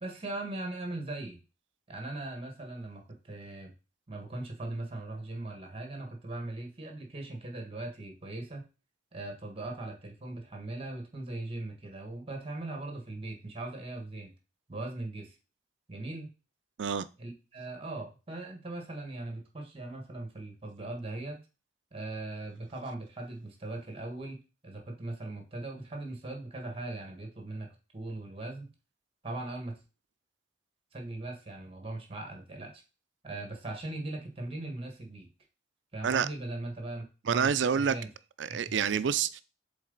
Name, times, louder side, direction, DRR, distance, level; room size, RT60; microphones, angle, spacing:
voice 1, 0.0-1.4 1.9-3.7 4.1-8.7 9.1-14.3 14.7-15.3 15.9-16.3 17.2-21.4 21.9-27.7 27.9-28.7 29.2-29.8 30.9-32.8 33.2-35.3 35.9-38.1 38.5-39.0, right 2 dB, 30° right, 1.6 m, -39 dB
voice 2, 37.3-38.0 38.4-39.4, right 7 dB, 80° right, 0.4 m, -27 dB
7.4 x 3.9 x 4.0 m
head